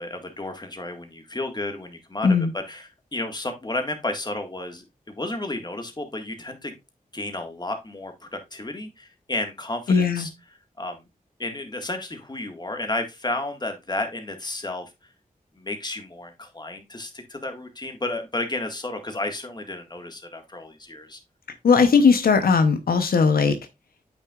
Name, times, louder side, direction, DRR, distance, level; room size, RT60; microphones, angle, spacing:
voice 1, 0.0-6.7 7.1-10.3 10.8-11.1 11.4-14.9 15.6-21.2, left 2 dB, 30° left, 5 dB, 1.6 m, -32 dB
voice 2, 9.9-10.3 21.6-23.6, left 5 dB, 90° left, 8 dB, 0.8 m, -18 dB
8.3 x 6.1 x 2.4 m, 0.22 s
cardioid pair, 60°, 15 cm